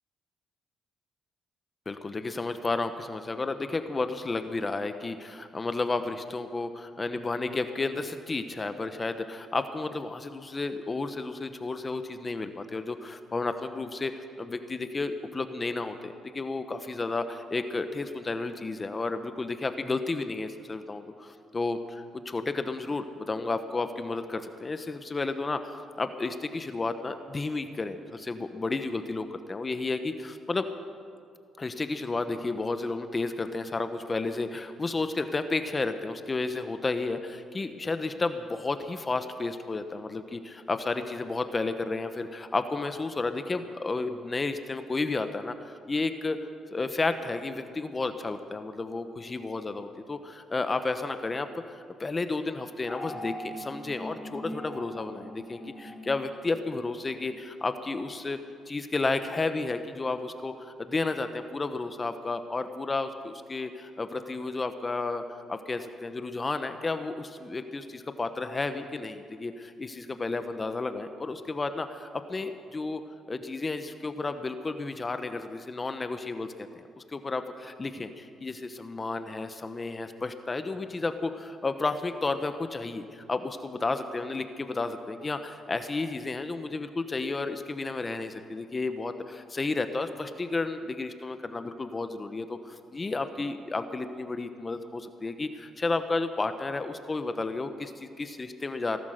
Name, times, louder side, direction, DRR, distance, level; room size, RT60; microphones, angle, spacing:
voice 1, 1.9-30.7 31.6-46.4 46.7-58.4 58.7-65.2 65.5-73.0 73.3-76.7 77.0-99.0, left 3 dB, 25° left, 9 dB, 1.0 m, -32 dB
sound 1, 52.8-57.4, equal, 10° left, 3.3 m, -42 dB
18.0 x 12.0 x 6.6 m, 2.3 s
cardioid pair, 90°, 0 cm